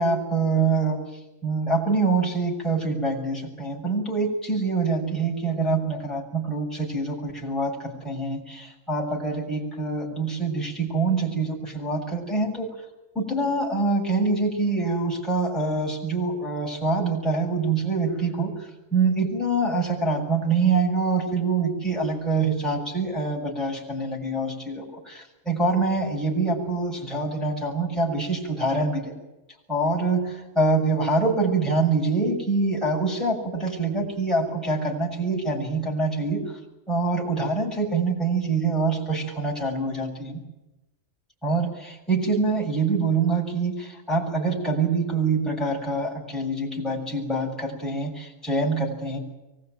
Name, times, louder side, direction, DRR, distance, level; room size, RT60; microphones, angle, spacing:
voice 1, 0.0-12.7 13.1-29.2 29.7-36.6 36.9-40.4 41.4-49.2, right 3 dB, ahead, -4 dB, 7.3 m, -25 dB
24.0 x 19.5 x 9.4 m, 0.98 s
omnidirectional pair, 1.4 m